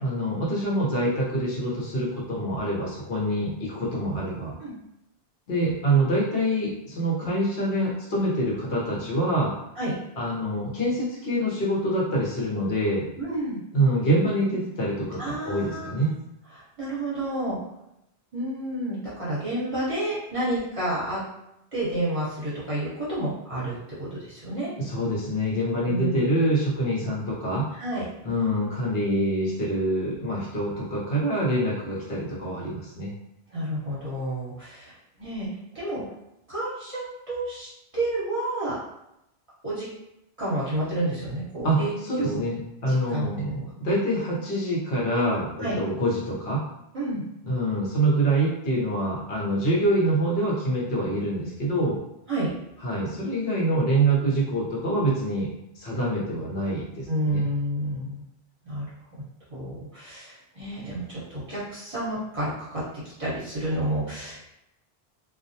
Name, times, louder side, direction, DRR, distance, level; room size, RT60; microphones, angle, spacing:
voice 1, 0.0-4.5 5.5-9.5 10.2-13.0 13.7-16.1 24.8-27.7 28.2-33.1 41.6-46.6 47.5-52.0 52.8-55.5 55.7-57.5, right 1 dB, 70° left, -5 dB, 0.9 m, -25 dB
voice 2, 13.2-13.6 15.2-16.1 16.5-17.6 18.3-21.2 21.7-24.7 25.8-26.2 27.7-28.1 33.5-35.5 35.7-36.0 36.5-38.8 39.6-39.9 40.4-42.4 42.9-43.6 45.6-45.8 46.9-47.2 52.3-52.5 57.1-58.2 58.6-58.9 59.5-64.4, right 1 dB, 35° right, -10 dB, 1.0 m, -30 dB
2.3 x 2.0 x 2.6 m, 0.85 s
omnidirectional pair, 1.1 m